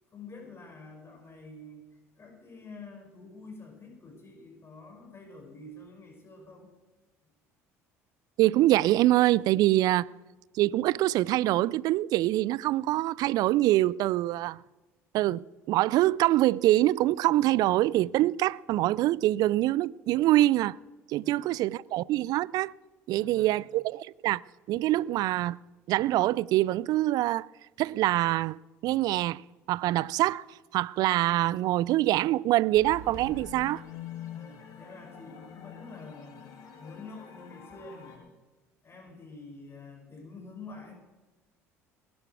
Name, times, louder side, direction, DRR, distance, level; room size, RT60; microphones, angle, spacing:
voice 1, 0.1-1.8 2.2-6.7 21.2-21.5 23.1-23.6 34.3-38.3 38.8-40.9, left 3 dB, 35° left, 6.1 m, -47 dB
voice 2, 8.4-10.1 10.5-14.6 15.1-20.8 21.1-22.7 23.1-24.4 24.7-25.6 25.9-27.5 27.8-29.4 29.7-30.5 30.7-33.8, right 15 dB, 55° right, 0.4 m, -25 dB
sound 1, 32.7-38.2, left 7 dB, 55° left, 3.3 m, -45 dB
20.5 x 11.5 x 4.7 m
hypercardioid pair, 60°, 8 cm